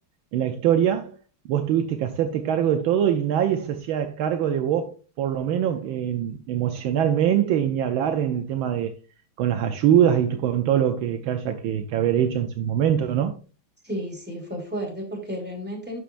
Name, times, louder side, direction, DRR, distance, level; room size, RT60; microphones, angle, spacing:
voice 1, 0.3-1.1 1.5-8.9 9.4-13.4, right 9 dB, 75° right, 1.4 m, -23 dB
voice 2, 13.8-16.0, equal, 5° right, 2.7 m, -32 dB
11.0 x 5.7 x 2.5 m
omnidirectional pair, 2.3 m